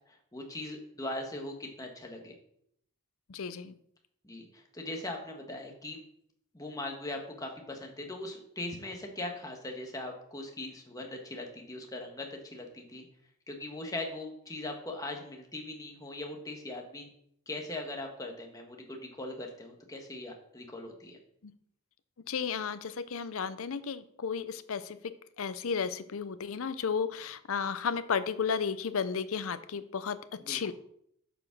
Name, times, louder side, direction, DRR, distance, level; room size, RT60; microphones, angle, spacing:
voice 1, 0.1-2.3 4.2-6.0 6.5-13.0 13.5-17.1 17.5-21.2 30.4-30.7, left 2 dB, 15° left, 2 dB, 1.3 m, -40 dB
voice 2, 3.3-3.8 21.4-21.5 22.3-30.7, left 6 dB, 65° left, 13 dB, 0.5 m, -33 dB
8.8 x 5.0 x 6.0 m, 0.71 s
head